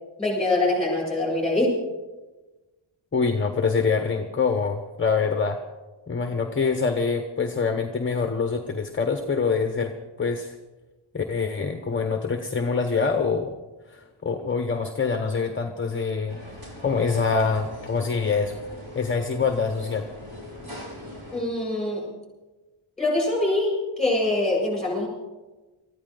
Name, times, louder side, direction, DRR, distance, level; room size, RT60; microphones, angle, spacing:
voice 1, 0.2-1.8 21.3-22.1 23.0-25.1, left 2 dB, ahead, -2 dB, 7.3 m, -24 dB
voice 2, 3.1-5.6 6.1-10.5 11.1-13.6 13.9-16.4 16.8-18.6 18.9-20.1, left 5 dB, 25° left, 6 dB, 0.9 m, -25 dB
sound 1, 16.3-21.4, left 1 dB, 50° right, 5.6 m, -41 dB
23.5 x 14.5 x 3.8 m, 1.2 s
wide cardioid pair, 135°, 49 cm